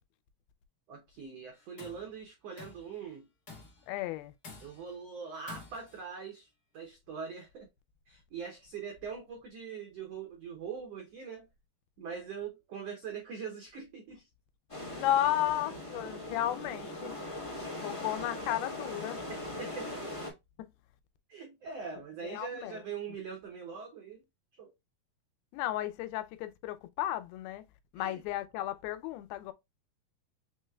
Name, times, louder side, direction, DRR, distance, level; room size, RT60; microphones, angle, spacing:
voice 1, 0.9-3.3 4.6-6.5 6.7-7.7 8.1-11.5 12.0-14.3 19.3-20.2 21.3-24.2 24.6-24.7 28.0-28.2, right 6 dB, 85° right, 1.4 m, -42 dB
Tools, 1.5-2.1 2.6-2.9 3.5-3.9 4.4-5.0 5.5-6.0, left 4 dB, 40° left, 1.4 m, -49 dB
voice 2, 3.9-4.3 14.9-17.2 17.5-19.2 20.6-20.7 22.2-22.8 25.5-27.6 27.9-29.5, left 13 dB, 90° left, 2.6 m, -34 dB
sound 1, 14.7-20.3, left 1 dB, 15° left, 1.2 m, -40 dB
6.1 x 3.2 x 2.3 m
omnidirectional pair, 4.2 m